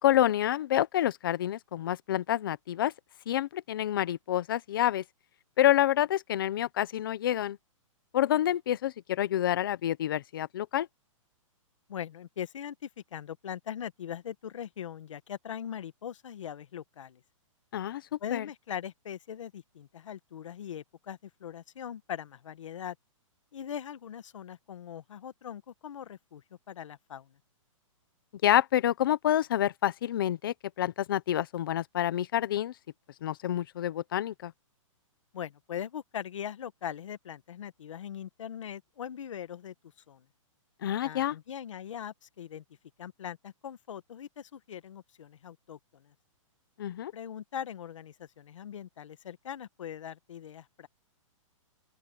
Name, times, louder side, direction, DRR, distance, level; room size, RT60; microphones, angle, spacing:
voice 1, 0.0-2.9 3.3-5.0 5.6-7.6 8.1-10.9 17.7-18.0 18.3-18.5 28.4-32.7 33.2-34.5 40.8-41.3 46.8-47.1, left 12 dB, 40° left, 0.9 m, -28 dB
voice 2, 11.9-17.2 18.2-22.9 23.5-27.3 35.3-39.7 40.1-40.2 41.0-42.6 43.0-46.1 47.1-50.9, left 9 dB, 65° left, 1.2 m, -41 dB
open air
hypercardioid pair, 175°, 17 cm